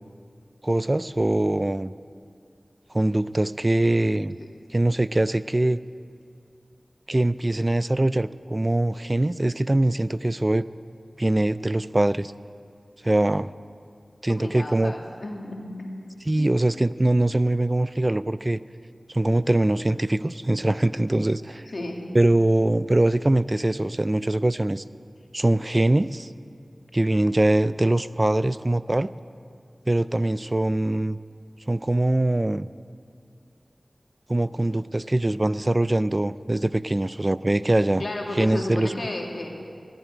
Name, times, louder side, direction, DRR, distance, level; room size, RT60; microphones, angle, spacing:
voice 1, 0.6-1.9 2.9-4.4 4.7-5.8 7.1-10.7 11.2-12.3 13.0-13.5 14.2-14.9 16.3-18.6 19.1-21.6 22.1-24.8 25.3-26.3 26.9-29.1 29.9-31.2 31.7-32.7 34.3-38.0 38.4-38.9, right 1 dB, 35° right, 16 dB, 0.3 m, -22 dB
voice 2, 14.3-15.9 16.4-16.5 21.7-22.1 38.0-39.5, left 1 dB, 65° left, 1 dB, 2.0 m, -33 dB
14.0 x 7.7 x 9.4 m, 2.4 s
cardioid pair, 40°, 0 cm